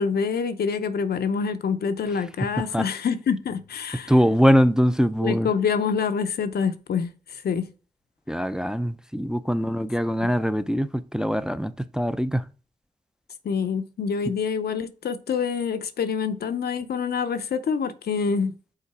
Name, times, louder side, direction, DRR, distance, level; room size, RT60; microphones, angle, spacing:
voice 1, 0.0-4.1 5.2-7.6 10.2-10.3 13.4-18.6, left 6 dB, 75° left, 0.7 m, -26 dB
voice 2, 4.1-5.5 8.3-12.4, equal, 5° right, 0.5 m, -22 dB
5.6 x 3.9 x 4.7 m
cardioid pair, 45°, 16 cm